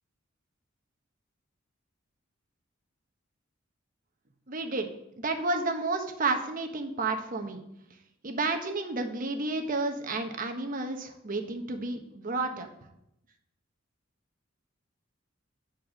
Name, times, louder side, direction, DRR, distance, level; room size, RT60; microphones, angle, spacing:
voice 1, 4.5-4.9 5.2-7.6 8.2-12.7, right 3 dB, 45° right, 4 dB, 1.0 m, -31 dB
8.9 x 4.5 x 6.3 m, 0.82 s
head